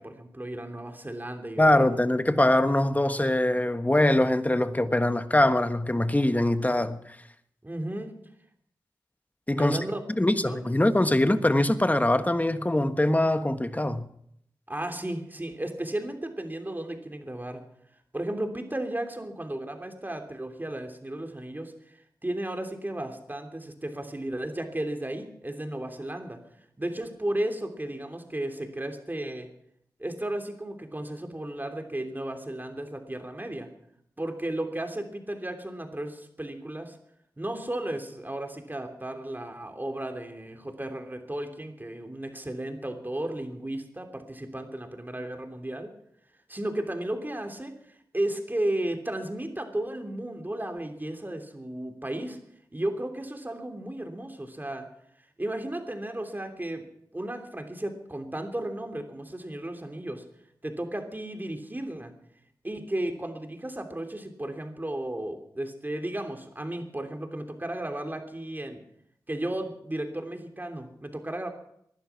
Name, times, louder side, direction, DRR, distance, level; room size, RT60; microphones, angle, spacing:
voice 1, 0.0-1.9 7.6-8.2 9.6-10.0 10.4-10.6 14.7-17.6 18.1-26.4 26.8-29.5 30.0-33.7 34.2-37.0 37.4-45.9 46.5-47.7 48.1-52.4 52.7-54.9 55.4-56.8 57.1-60.2 60.6-62.1 62.6-68.8 69.3-71.5, right 1 dB, 25° right, 3.1 m, -34 dB
voice 2, 1.6-7.0 9.5-9.8 10.2-14.1, left 1 dB, 20° left, 1.3 m, -23 dB
19.5 x 11.5 x 5.9 m
cardioid pair, 45°, 8 cm